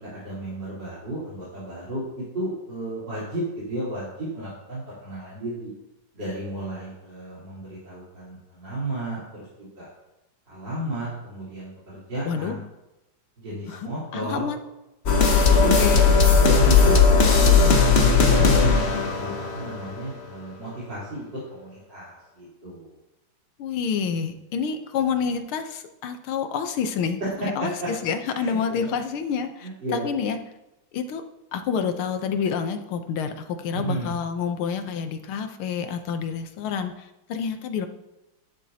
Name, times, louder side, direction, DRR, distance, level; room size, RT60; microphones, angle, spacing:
voice 1, 0.0-5.7 6.1-9.9 10.5-12.6 13.4-14.5 15.6-15.9 16.4-18.7 19.1-23.0 27.2-27.9 28.3-28.9 29.6-30.0 33.7-34.1, right 1 dB, 55° right, -10 dB, 4.5 m, -32 dB
voice 2, 13.7-14.6 15.5-16.0 23.6-27.2 27.6-27.7 28.0-30.4 30.9-31.2 31.5-37.9, left 6 dB, 90° left, 7 dB, 1.8 m, -28 dB
sound 1, 15.1-20.1, left 5 dB, 40° left, 1.0 m, -17 dB
11.5 x 10.5 x 2.9 m, 0.94 s
omnidirectional pair, 2.3 m